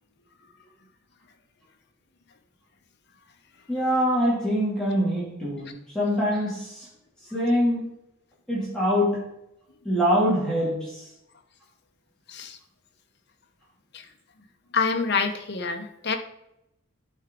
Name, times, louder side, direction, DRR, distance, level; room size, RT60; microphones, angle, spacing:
voice 1, 3.7-6.9 7.3-7.9 8.5-9.3 9.8-11.0, equal, 5° left, -8 dB, 2.3 m, -24 dB
voice 2, 14.7-16.2, left 5 dB, 50° left, 5 dB, 0.9 m, -26 dB
11.0 x 4.7 x 3.7 m, 0.86 s
head